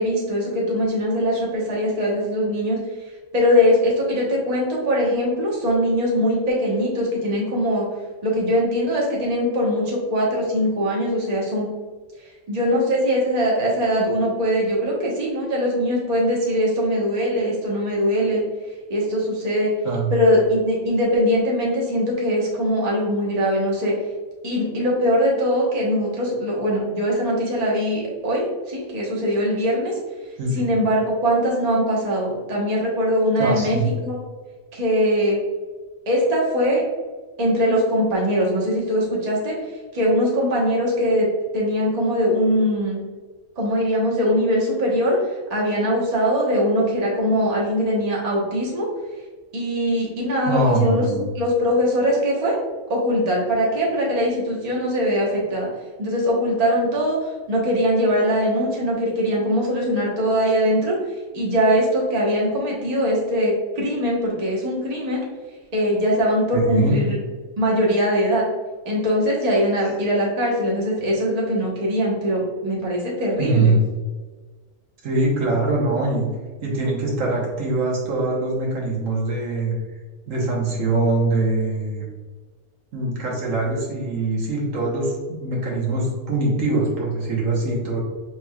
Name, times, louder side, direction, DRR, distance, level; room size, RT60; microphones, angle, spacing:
voice 1, 0.0-2.8 3.3-7.8 8.2-11.7 12.5-18.4 18.9-19.7 20.1-23.9 24.4-30.0 30.5-34.2 34.7-35.4 36.1-36.8 37.4-39.5 39.9-41.3 41.5-43.0 43.6-45.2 45.5-48.9 49.5-51.0 51.3-52.6 52.9-55.7 56.0-61.0 61.3-65.2 65.7-67.2 67.6-68.4 68.8-73.7, equal, 35° right, -4 dB, 1.0 m, -21 dB
voice 2, 30.4-30.9 33.4-33.9 50.5-51.2 66.5-67.0 73.4-73.8 75.0-76.3 76.6-79.7 80.3-82.1 82.9-88.0, right 2 dB, 75° right, -3 dB, 1.3 m, -23 dB
5.9 x 3.0 x 2.3 m, 1.4 s
omnidirectional pair, 1.3 m